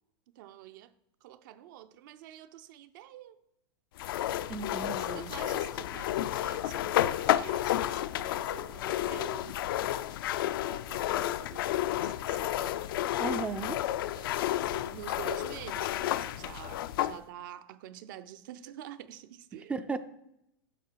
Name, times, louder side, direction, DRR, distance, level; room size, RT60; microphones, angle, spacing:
voice 1, 0.3-0.9 1.2-3.4 5.0-9.7 10.7-12.7 14.1-19.7, right 12 dB, 55° right, 0.7 m, -47 dB
sound 1, 4.0-17.2, left 13 dB, 65° left, 0.5 m, -31 dB
voice 2, 4.5-5.3 13.2-13.8 19.7-20.0, right 4 dB, 10° right, 0.4 m, -35 dB
10.0 x 6.6 x 4.6 m
supercardioid pair, 145°, 13 cm